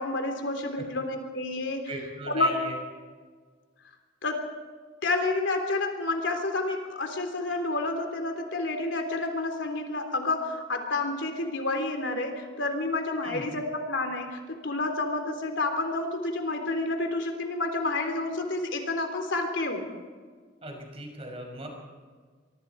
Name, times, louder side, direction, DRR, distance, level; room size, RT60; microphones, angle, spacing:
voice 1, 0.0-1.9 2.3-2.6 4.2-4.5 5.0-19.9, left 2 dB, 70° left, 5 dB, 3.5 m, -29 dB
voice 2, 1.9-2.8 13.2-13.5 20.6-21.7, right 1 dB, 30° right, 2 dB, 5.9 m, -38 dB
24.5 x 24.0 x 4.7 m, 1.5 s
head